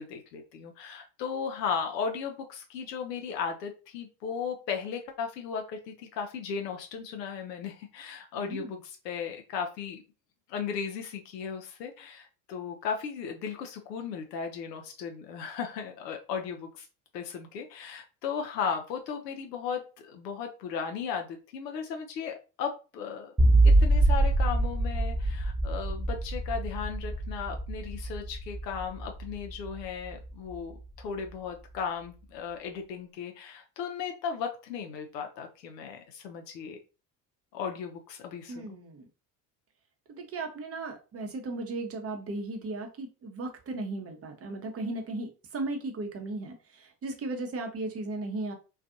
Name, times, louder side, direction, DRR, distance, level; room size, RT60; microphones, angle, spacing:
voice 1, 0.0-10.0 10.5-16.9 17.1-23.3 23.6-36.8 37.5-38.8, left 6 dB, 80° left, 4 dB, 0.6 m, -36 dB
voice 2, 8.4-8.7 38.5-39.1 40.1-48.5, right 2 dB, 30° right, 4 dB, 0.8 m, -36 dB
sound 1, 23.4-30.6, right 2 dB, 5° right, 0.5 m, -25 dB
2.5 x 2.3 x 2.5 m, 0.32 s
hypercardioid pair, 65°, 49 cm